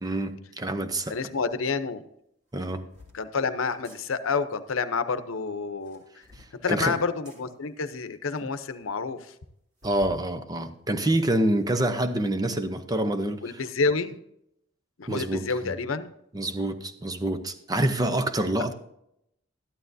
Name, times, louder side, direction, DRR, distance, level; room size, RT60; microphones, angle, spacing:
voice 1, 0.0-1.2 2.5-2.9 6.7-6.9 9.8-13.6 15.1-15.7 16.3-18.7, right 1 dB, 20° right, 0.7 m, -27 dB
voice 2, 1.1-2.0 3.1-6.0 6.5-9.3 13.4-14.2 15.0-16.1, left 4 dB, 90° left, 0.7 m, -29 dB
sound 1, 1.5-1.6 2.5-3.2 3.7-4.0 5.7-6.5 7.2-7.4 8.1-8.2 8.4-8.5 8.8-8.9 9.8-10.3 10.7-11.7, left 2 dB, 40° right, 2.3 m, -51 dB
13.0 x 11.5 x 2.7 m
head